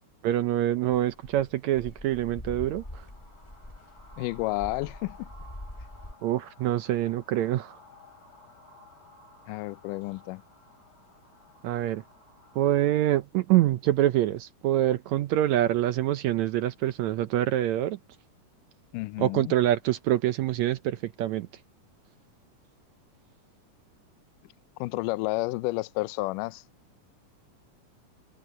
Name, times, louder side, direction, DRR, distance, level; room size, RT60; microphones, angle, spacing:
voice 1, 0.2-3.1 6.2-7.8 11.6-12.0 12.6-18.0 19.2-21.5, right 13 dB, 75° right, 1.7 m, -25 dB
sound 1, 0.9-6.1, left 1 dB, 10° left, 3.3 m, -44 dB
sound 2, 2.7-13.0, left 2 dB, 65° left, 6.1 m, -55 dB
voice 2, 4.2-5.3 9.5-10.4 18.9-19.5 24.4-24.5 24.8-26.6, left 21 dB, 85° left, 2.1 m, -31 dB
omnidirectional pair, 3.8 m